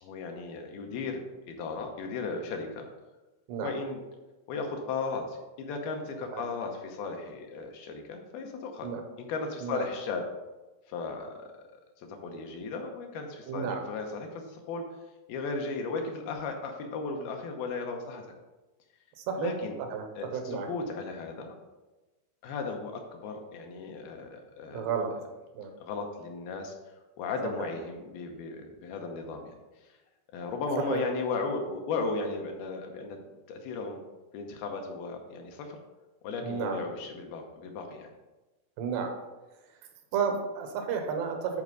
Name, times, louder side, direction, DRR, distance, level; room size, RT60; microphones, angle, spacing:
voice 1, 0.0-2.9 3.6-4.0 4.5-8.9 9.2-10.3 10.9-11.5 12.0-14.9 15.3-18.2 19.4-19.8 20.2-21.6 22.4-24.8 25.8-26.7 27.2-29.6 30.3-33.2 33.5-34.0 34.3-35.8 36.2-38.1, left 4 dB, 75° left, 3 dB, 2.6 m, -35 dB
voice 2, 13.5-13.8 19.2-19.5 19.9-20.7 24.7-25.1 25.6-25.7 27.6-27.7 30.9-31.0 36.4-36.8 38.8-39.1 40.1-41.6, right 6 dB, 90° right, 4 dB, 3.1 m, -32 dB
11.0 x 4.6 x 3.9 m, 1.1 s
omnidirectional pair, 4.6 m